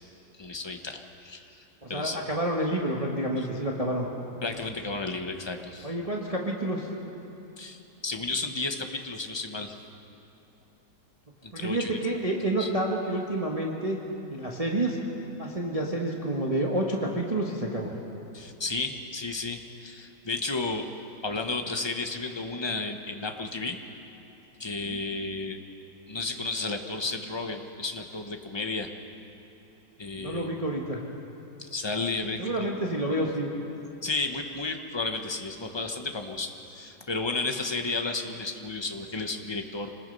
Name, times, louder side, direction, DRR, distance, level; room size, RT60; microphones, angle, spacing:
voice 1, 0.4-1.6 1.9-2.2 3.4-3.5 4.4-5.9 7.6-9.7 11.4-12.0 12.6-12.7 18.3-20.9 21.2-23.8 24.6-25.6 26.1-28.9 30.0-30.6 31.6-32.7 34.0-39.9, left 3 dB, 20° left, 5 dB, 0.8 m, -33 dB
voice 2, 1.8-4.1 5.8-6.9 11.5-14.0 14.3-15.0 15.4-17.9 24.9-25.0 30.2-31.0 32.4-33.5, right 1 dB, 20° right, -1 dB, 1.4 m, -29 dB
26.0 x 20.0 x 5.4 m, 2.9 s
omnidirectional pair, 2.0 m